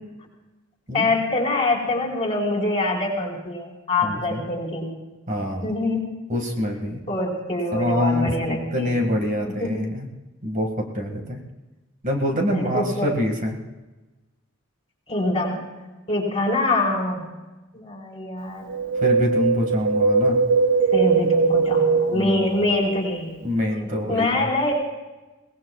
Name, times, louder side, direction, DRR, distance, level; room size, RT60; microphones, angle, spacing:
voice 1, 0.9-4.9 5.6-6.0 7.1-8.9 9.6-9.8 12.5-13.1 15.1-15.7 16.1-17.3 17.7-18.7 20.9-23.3 23.7-24.7, left 2 dB, 30° left, -2 dB, 4.7 m, -24 dB
voice 2, 4.0-4.4 5.3-5.7 6.3-7.0 7.7-10.1 10.4-11.4 12.0-13.6 19.0-20.4 22.1-22.5 23.4-24.5, left 1 dB, 40° right, 1 dB, 2.1 m, -25 dB
Wind, 18.7-23.0 23.3-23.4, right 4 dB, 65° right, 0.7 m, -20 dB
23.5 x 19.0 x 2.4 m, 1.1 s
head